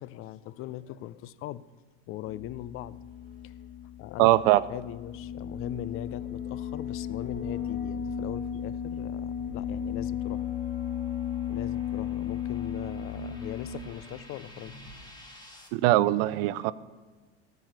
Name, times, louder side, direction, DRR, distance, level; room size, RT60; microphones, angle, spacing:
voice 1, 0.0-1.6 2.1-3.0 3.4-3.5 4.0-4.4 4.7-10.4 11.5-14.7, left 13 dB, 45° left, 0.5 m, -40 dB
sound 1, 2.3-15.1, left 8 dB, 30° left, 2.8 m, -35 dB
voice 2, 4.2-4.6 15.7-16.7, right 17 dB, 70° right, 0.6 m, -21 dB
sound 2, 8.9-15.7, left 1 dB, 15° left, 2.2 m, -54 dB
13.0 x 4.9 x 8.0 m
supercardioid pair, 105°, 30 cm